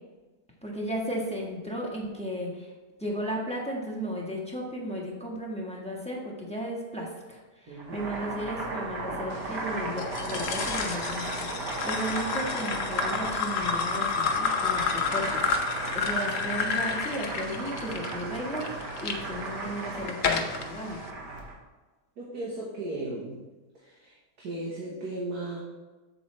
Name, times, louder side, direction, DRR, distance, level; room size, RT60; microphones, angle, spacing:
voice 1, 0.6-2.7 3.0-21.0, equal, 5° left, -2 dB, 1.2 m, -35 dB
voice 2, 7.7-8.1 22.2-23.4 23.7-25.6, right 2 dB, 65° right, -5 dB, 1.8 m, -36 dB
Boiling, 7.7-21.5, right 2 dB, 80° right, 2.0 m, -36 dB
sound 1, 10.0-19.2 19.7-20.7, left 5 dB, 60° left, 1.0 m, -30 dB
7.9 x 7.2 x 3.2 m, 1.2 s
omnidirectional pair, 1.8 m